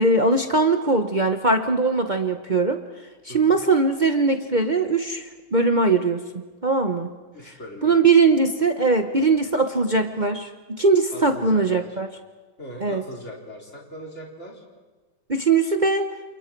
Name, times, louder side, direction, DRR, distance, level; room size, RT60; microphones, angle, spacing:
voice 1, 0.0-2.8 3.2-6.2 6.6-7.1 7.8-10.5 10.8-12.1 12.8-13.0 15.3-16.1, right 3 dB, 40° right, 5 dB, 0.6 m, -20 dB
voice 2, 7.3-8.0 11.1-11.9 12.6-14.6, equal, 35° left, -2 dB, 4.7 m, -40 dB
28.5 x 28.5 x 4.6 m, 1.3 s
omnidirectional pair, 2.1 m